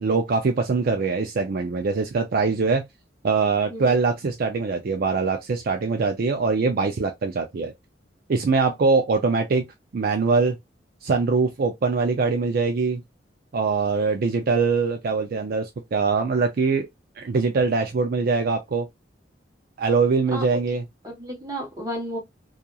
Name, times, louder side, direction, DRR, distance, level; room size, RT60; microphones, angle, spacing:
voice 1, 0.0-2.8 3.2-7.7 8.3-9.6 9.9-10.6 11.0-13.0 13.5-16.9 17.2-18.9 19.8-20.8, right 4 dB, 55° right, 0.4 m, -23 dB
voice 2, 21.0-22.2, equal, 20° right, 1.2 m, -32 dB
2.8 x 2.4 x 2.3 m
head